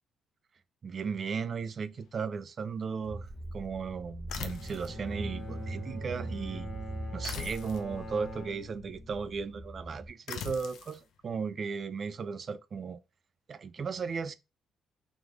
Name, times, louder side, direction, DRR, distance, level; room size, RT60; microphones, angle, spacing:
voice 1, 0.8-6.7 7.1-13.0 13.5-14.3, right 5 dB, 40° right, 0.4 m, -36 dB
Car / Engine, 3.0-10.1, right 2 dB, 20° right, 1.7 m, -41 dB
sound 1, 4.3-5.0 7.2-7.9 10.3-11.0, left 8 dB, 75° left, 0.6 m, -40 dB
Bowed string instrument, 4.3-9.5, left 1 dB, 25° left, 1.7 m, -45 dB
3.5 x 3.2 x 3.6 m
cardioid pair, 125°, 0 cm